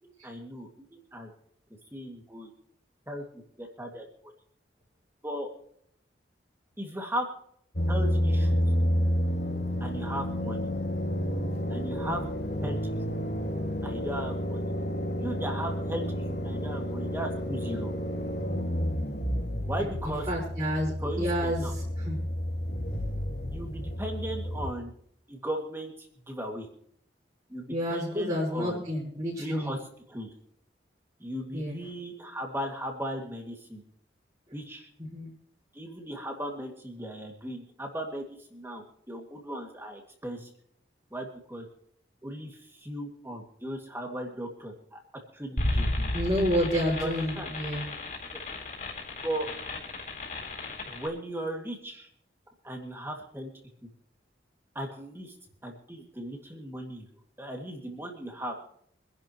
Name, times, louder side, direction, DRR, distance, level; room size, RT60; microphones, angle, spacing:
voice 1, 0.0-1.3 1.9-2.5 3.1-4.3 5.2-5.5 6.8-7.3 7.9-8.6 9.8-10.7 11.7-12.2 12.6-12.8 13.8-14.6 15.2-17.9 19.7-20.3 21.0-21.7 23.5-24.9 25.3-25.9 26.2-26.7 27.5-28.8 29.4-29.8 30.1-30.3 31.2-33.8 34.5-34.9 35.7-40.5 41.1-41.7 42.2-45.0 45.3-46.1 47.0-47.5 49.2-49.5 50.8-52.1 52.6-53.5 54.7-55.3 55.6-57.1 57.4-58.6, right 1 dB, 10° right, 2 dB, 2.2 m, -37 dB
sound 1, 7.7-24.7, equal, 65° left, 2.8 m, -30 dB
voice 2, 20.3-20.9 21.2-22.2 27.7-29.7 31.5-31.8 35.0-35.3 46.1-47.9, equal, 30° right, -9 dB, 5.3 m, -29 dB
sound 2, 45.6-51.1, left 1 dB, 45° left, 3.9 m, -33 dB
25.0 x 11.0 x 3.1 m, 0.66 s
head